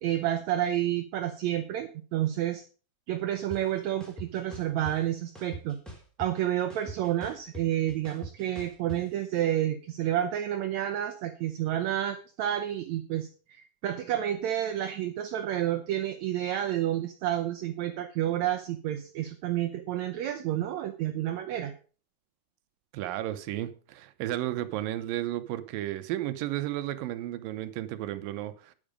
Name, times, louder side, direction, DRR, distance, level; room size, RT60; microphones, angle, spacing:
voice 1, 0.0-2.6 3.1-5.8 6.2-21.7, right 12 dB, 75° right, 1.8 m, -30 dB
sound 1, 3.5-3.6 4.0-4.9 5.3-6.4 6.7-9.0, right 2 dB, ahead, 2.7 m, -42 dB
voice 2, 22.9-28.8, right 14 dB, 90° right, 2.6 m, -33 dB
10.0 x 9.0 x 5.1 m
omnidirectional pair, 3.9 m